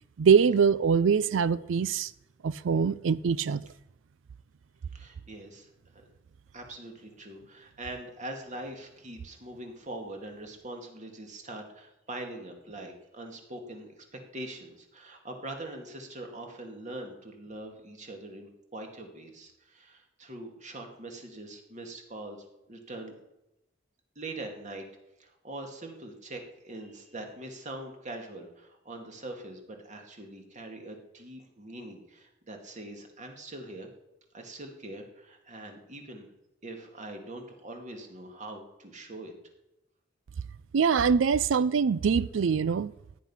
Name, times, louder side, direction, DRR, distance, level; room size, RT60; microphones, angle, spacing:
voice 1, 0.2-2.1 2.4-3.6 40.7-42.9, right 6 dB, 75° right, 0.4 m, -23 dB
voice 2, 4.9-5.7 6.5-22.4 22.7-23.1 24.2-24.9 25.2-33.9 34.3-36.3 36.6-39.3, right 1 dB, 40° right, 2.4 m, -43 dB
16.0 x 10.0 x 5.7 m
head